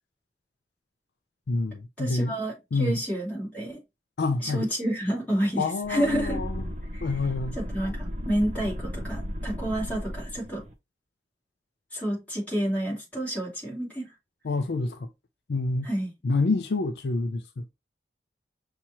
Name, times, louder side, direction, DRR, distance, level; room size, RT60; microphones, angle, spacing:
voice 1, 1.5-2.4 2.7-3.0 4.2-4.7 5.6-6.7 7.0-7.6 14.4-15.1 15.5-15.9 16.2-17.6, left 3 dB, 65° left, 0.4 m, -27 dB
voice 2, 2.0-2.5 2.8-3.8 4.4-5.6 5.9-6.4 6.9-7.1 7.6-10.6 11.9-14.1 15.8-16.1, right 1 dB, 10° left, 2.8 m, -29 dB
sound 1, 5.8-10.7, equal, 40° right, 0.6 m, -35 dB
5.9 x 2.8 x 2.8 m
head